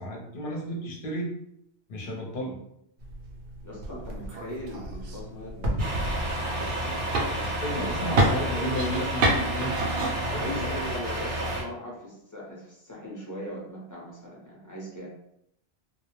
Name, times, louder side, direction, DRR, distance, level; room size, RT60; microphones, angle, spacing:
voice 1, 0.0-1.3 1.9-2.6 7.4-9.7 10.2-10.7, equal, 55° left, -1 dB, 0.8 m, -33 dB
sound 1, 3.0-10.9, right 1 dB, 70° right, 0.8 m, -30 dB
voice 2, 3.6-8.5 9.2-9.4 10.1-15.1, equal, 20° left, -5 dB, 0.6 m, -40 dB
Truck, 5.8-11.6, right 1 dB, 35° right, 0.6 m, -31 dB
2.2 x 2.0 x 2.9 m, 0.77 s
omnidirectional pair, 1.2 m